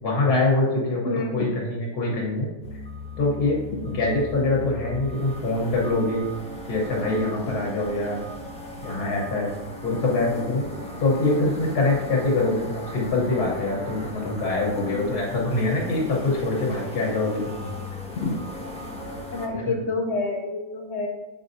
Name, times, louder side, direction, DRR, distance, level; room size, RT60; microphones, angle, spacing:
voice 1, 0.0-2.5 3.2-6.3 6.7-8.2 8.8-9.5 9.8-10.7 11.0-17.6 19.5-19.8, left 2 dB, 90° left, -3 dB, 1.8 m, -24 dB
voice 2, 0.9-1.4 18.2-18.3 19.3-21.1, left 3 dB, 55° left, 1 dB, 0.9 m, -28 dB
sound 1, 2.6-19.5, left 1 dB, 5° left, 0.6 m, -37 dB
6.9 x 5.5 x 2.6 m, 1.1 s
omnidirectional pair, 1.6 m